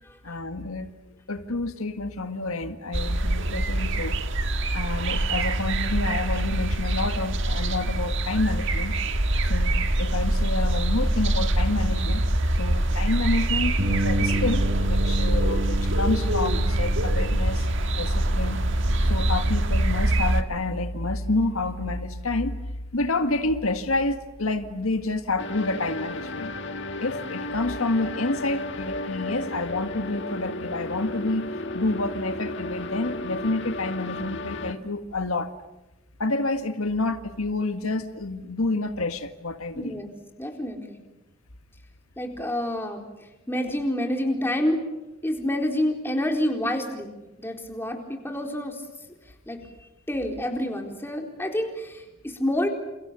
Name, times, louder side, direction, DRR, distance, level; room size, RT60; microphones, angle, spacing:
voice 1, 0.2-1.0 1.3-4.2 4.7-9.0 9.4-12.2 12.5-17.7 18.0-18.7 19.0-22.6 22.9-26.5 27.0-31.5 31.7-35.5 36.2-40.0, left 2 dB, 85° left, 8 dB, 1.8 m, -28 dB
sound 1, 2.9-20.4, right 1 dB, 60° right, 1.8 m, -24 dB
Bass guitar, 13.8-20.0, right 1 dB, 45° right, 5.8 m, -31 dB
sound 2, 25.4-34.7, left 2 dB, 60° left, 1.9 m, -33 dB
voice 2, 39.8-40.1 40.4-41.0 42.2-43.1 43.5-44.8 45.2-47.1 47.4-48.8 49.5-49.6 50.1-52.7, left 1 dB, 10° left, 2 dB, 4.2 m, -28 dB
29.5 x 29.0 x 7.0 m, 0.99 s
head